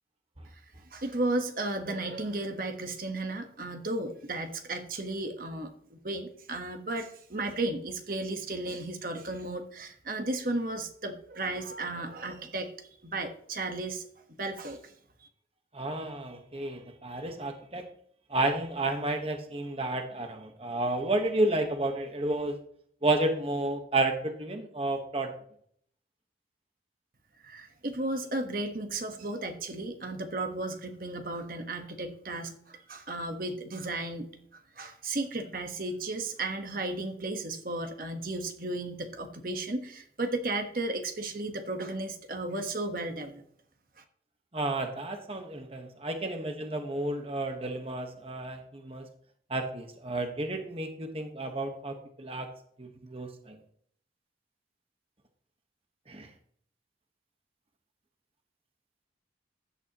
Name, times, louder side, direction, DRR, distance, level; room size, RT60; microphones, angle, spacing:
voice 1, 0.9-14.1 14.4-14.9 27.4-43.4 44.0-44.1, right 2 dB, 50° right, 5 dB, 1.3 m, -34 dB
voice 2, 15.7-17.8 18.3-22.6 23.0-25.3 44.5-49.0 49.5-52.5 52.8-53.6 56.1-56.3, right 2 dB, 30° right, 5 dB, 1.3 m, -31 dB
15.5 x 11.0 x 3.0 m, 0.63 s
head